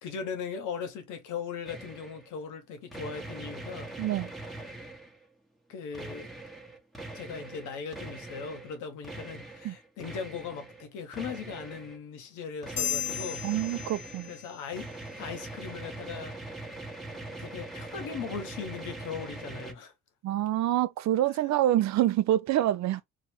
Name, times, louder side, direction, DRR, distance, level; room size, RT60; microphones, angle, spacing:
voice 1, 0.0-3.9 4.7-4.9 5.7-6.3 7.1-13.4 14.3-14.9 15.2-16.4 17.4-19.9, left 6 dB, 90° left, 0.9 m, -39 dB
sound 1, 1.6-2.3 2.9-5.2 5.9-8.8 9.0-10.8 11.1-12.0 12.6-19.7, right 2 dB, ahead, 0.8 m, -42 dB
voice 2, 4.0-4.3 9.6-9.8 13.4-14.3 20.2-23.0, right 13 dB, 65° right, 0.4 m, -26 dB
sound 2, 12.8-14.6, left 10 dB, 35° left, 0.6 m, -34 dB
3.0 x 2.0 x 3.0 m
cardioid pair, 90°, 30 cm